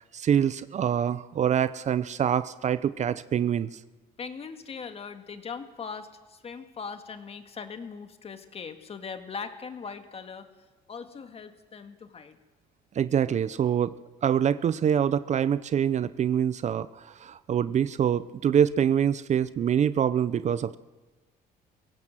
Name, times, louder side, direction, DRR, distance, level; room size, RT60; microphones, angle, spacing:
voice 1, 0.0-3.7 13.0-20.8, right 9 dB, 45° right, 15 dB, 0.7 m, -25 dB
voice 2, 4.2-10.5 10.9-12.4, left 5 dB, 35° left, 8 dB, 2.0 m, -40 dB
22.5 x 17.0 x 7.7 m, 1.2 s
cardioid pair, 110°, 17 cm